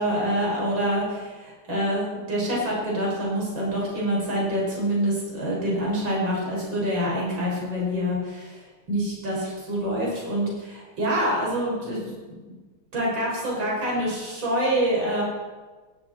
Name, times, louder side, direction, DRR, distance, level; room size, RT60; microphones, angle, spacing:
voice 1, 0.0-2.0 2.3-8.6 8.9-12.0 12.9-15.2, equal, 70° right, -5 dB, 6.6 m, -26 dB
20.0 x 16.0 x 4.5 m, 1.3 s
omnidirectional pair, 2.2 m